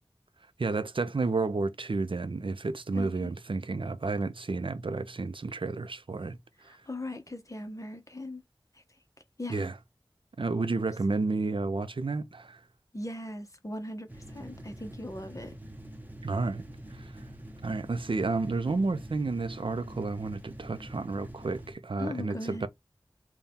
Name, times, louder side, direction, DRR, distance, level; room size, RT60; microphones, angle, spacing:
voice 1, 0.6-6.8 9.5-9.7 10.4-12.6 16.2-16.6 16.9-17.1 17.6-22.7, right 3 dB, 70° right, 0.6 m, -31 dB
voice 2, 2.9-3.3 6.6-8.4 9.4-9.7 12.9-15.5 22.0-22.7, left 1 dB, 35° left, 0.9 m, -39 dB
sound 1, 14.1-21.8, right 1 dB, 20° right, 0.8 m, -45 dB
4.1 x 2.3 x 3.6 m
wide cardioid pair, 50°, 9 cm